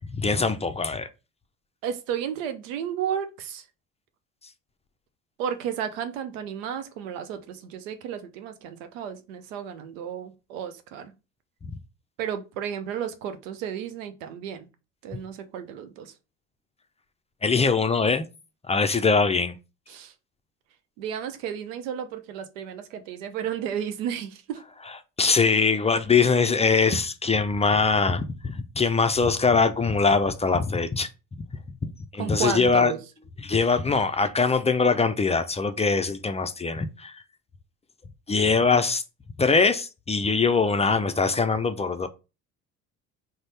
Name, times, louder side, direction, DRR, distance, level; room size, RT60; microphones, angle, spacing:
voice 1, 0.1-1.1 11.6-11.7 17.4-18.2 18.7-19.6 25.2-31.1 31.8-32.9 33.4-37.2 38.3-39.0 39.4-42.1, left 4 dB, 15° left, 0.4 m, -22 dB
voice 2, 1.8-3.6 5.4-11.1 12.2-14.6 15.0-16.1 19.9-20.1 21.0-24.6 32.2-33.0, right 8 dB, 80° right, 0.6 m, -33 dB
3.9 x 2.1 x 3.3 m
hypercardioid pair, 55°, 38 cm